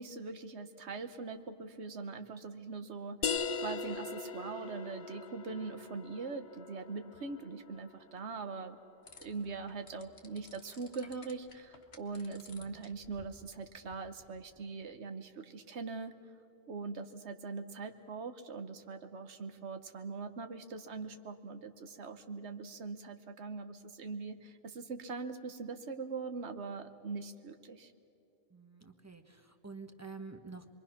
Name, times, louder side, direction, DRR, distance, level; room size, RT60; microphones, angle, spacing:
voice 1, 0.0-8.8 9.2-16.1 16.7-27.9, right 4 dB, 80° right, 8 dB, 1.3 m, -42 dB
sound 1, 3.2-8.6, left 5 dB, 50° left, 0.8 m, -40 dB
sound 2, 9.1-14.7, left 3 dB, 65° left, 1.7 m, -58 dB
voice 2, 28.5-30.6, right 4 dB, 15° right, 6 dB, 1.2 m, -48 dB
27.0 x 22.5 x 5.9 m, 2.8 s
omnidirectional pair, 1.1 m